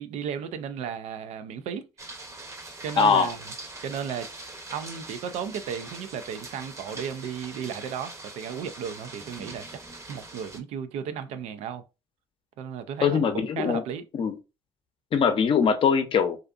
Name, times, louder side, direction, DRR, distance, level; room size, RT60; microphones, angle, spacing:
voice 1, 0.0-1.9 2.8-3.4 3.8-4.3 4.7-9.7 10.1-11.9 12.6-14.0, right 8 dB, 75° right, 0.4 m, -34 dB
sound 1, 2.0-10.6, right 2 dB, 25° right, 0.7 m, -42 dB
voice 2, 3.0-3.3 13.0-13.8 14.1-14.4 15.1-16.4, left 6 dB, 50° left, 0.6 m, -22 dB
2.5 x 2.4 x 2.4 m
supercardioid pair, 65°, 11 cm